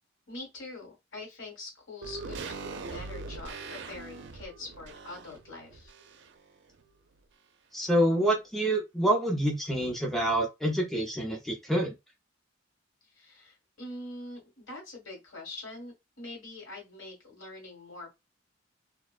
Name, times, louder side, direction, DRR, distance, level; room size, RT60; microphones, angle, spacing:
voice 1, 0.3-5.9 13.1-18.1, left 2 dB, 85° left, 1.6 m, -44 dB
sound 1, 2.0-6.5 6.8-6.9, right 4 dB, 60° right, 0.4 m, -41 dB
voice 2, 7.7-11.9, right 1 dB, ahead, 0.6 m, -27 dB
2.5 x 2.1 x 2.3 m
head